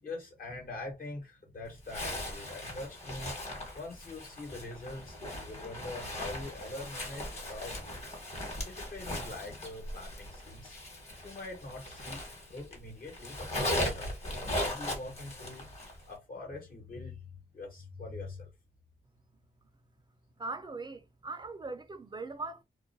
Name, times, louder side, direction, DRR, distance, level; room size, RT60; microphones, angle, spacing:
voice 1, 0.0-8.1 8.6-10.7 11.2-14.1 14.4-15.7 16.1-18.5, left 2 dB, 70° left, 1.1 m, -44 dB
Zipper (clothing), 1.9-12.8 13.1-16.0, left 1 dB, 45° left, 1.1 m, -38 dB
voice 2, 20.4-22.6, right 3 dB, 30° right, 0.3 m, -40 dB
2.3 x 2.1 x 2.5 m
cardioid pair, 80°, 16 cm